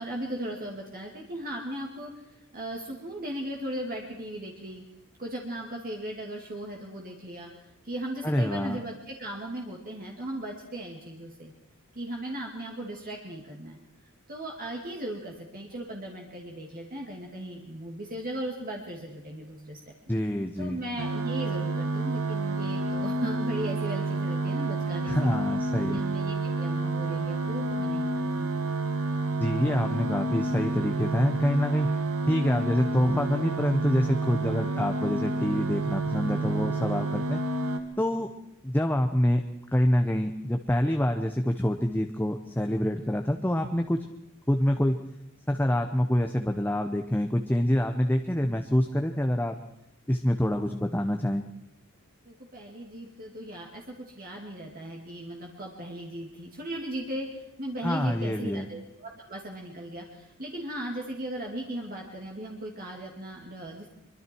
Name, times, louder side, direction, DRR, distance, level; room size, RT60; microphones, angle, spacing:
voice 1, 0.0-2.1 2.5-4.8 5.2-7.5 7.8-11.5 11.9-13.8 14.3-19.8 20.6-25.3 25.9-28.5 52.2-57.3 57.6-63.9, right 1 dB, 45° right, 0 dB, 2.6 m, -37 dB
voice 2, 8.2-8.8 20.1-20.8 25.1-26.0 29.4-31.9 32.3-37.4 38.0-38.3 38.6-39.4 39.7-44.0 44.5-45.0 45.5-49.5 50.1-51.4 57.8-58.7, equal, 10° left, 4 dB, 0.9 m, -26 dB
sound 1, 21.0-37.8, right 2 dB, 85° right, 1.9 m, -29 dB
24.0 x 23.5 x 4.6 m, 0.84 s
head